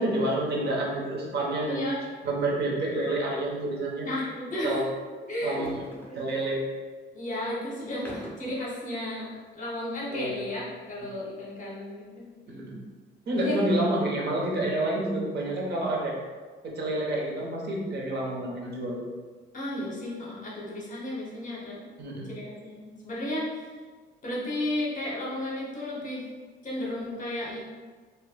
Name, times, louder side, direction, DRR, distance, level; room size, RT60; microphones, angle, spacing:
voice 1, 0.0-1.8 2.2-4.1 4.6-4.9 5.4-5.8 6.1-6.6 10.1-10.4 12.5-12.8 13.3-16.1 16.6-19.0 22.0-22.3, right 1 dB, 55° right, -3 dB, 1.0 m, -28 dB
voice 2, 1.7-2.0 4.0-4.9 5.3-5.7 6.1-6.5 7.1-12.2 13.4-13.6 19.5-21.8 22.3-23.7 24.2-26.2 26.6-27.6, left 1 dB, 40° left, -5 dB, 0.9 m, -33 dB
sound 1, 3.0-3.2 3.5-3.6 5.4-6.6 7.8-8.6, left 1 dB, 10° left, 0.7 m, -43 dB
4.7 x 2.3 x 2.3 m, 1.4 s
cardioid pair, 90°, 20 cm